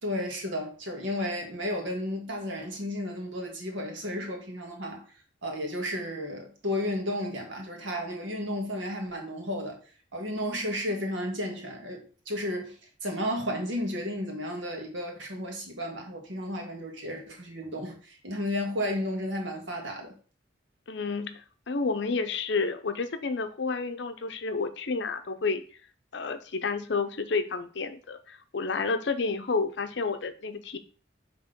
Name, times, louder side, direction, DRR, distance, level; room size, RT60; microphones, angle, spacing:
voice 1, 0.0-5.0 5.4-9.8 10.1-20.1, left 1 dB, 85° right, 1.7 m, -33 dB
voice 2, 20.9-21.4 21.7-25.6 26.1-30.8, left 4 dB, 70° left, 0.6 m, -30 dB
5.9 x 3.5 x 5.1 m
head